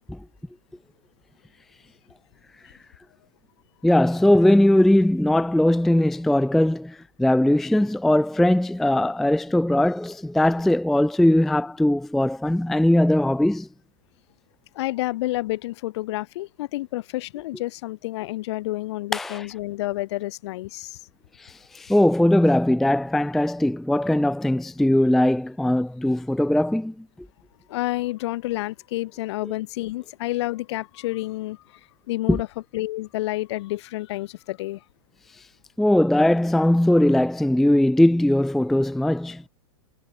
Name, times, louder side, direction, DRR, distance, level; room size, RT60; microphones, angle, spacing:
voice 1, 3.8-13.7 19.1-19.5 21.4-26.9 32.3-32.4 35.8-39.4, left 1 dB, ahead, 0.3 m, -20 dB
voice 2, 14.7-21.0 27.7-31.8 32.1-32.5 32.7-34.8, left 17 dB, 60° left, 2.7 m, -29 dB
hypercardioid pair, 125°, 16 cm